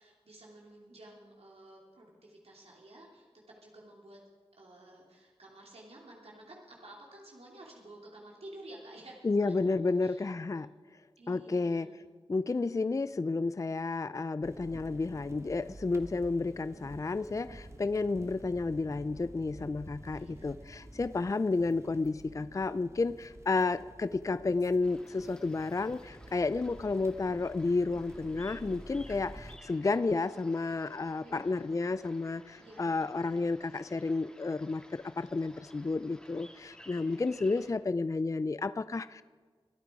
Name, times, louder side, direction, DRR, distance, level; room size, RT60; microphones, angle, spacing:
voice 1, 0.0-4.2 4.5-10.3 11.2-12.0 20.1-20.6 31.2-31.6 32.6-33.1, right 1 dB, 75° right, -2 dB, 2.9 m, -52 dB
voice 2, 9.2-10.7 11.3-11.9 12.3-39.2, left 3 dB, 30° left, 15 dB, 0.4 m, -31 dB
sound 1, 14.4-29.6, right 1 dB, 25° right, 1.3 m, -50 dB
sound 2, 24.8-37.7, equal, 10° left, 2.9 m, -57 dB
23.5 x 9.0 x 4.8 m, 1.5 s
cardioid pair, 50°, 11 cm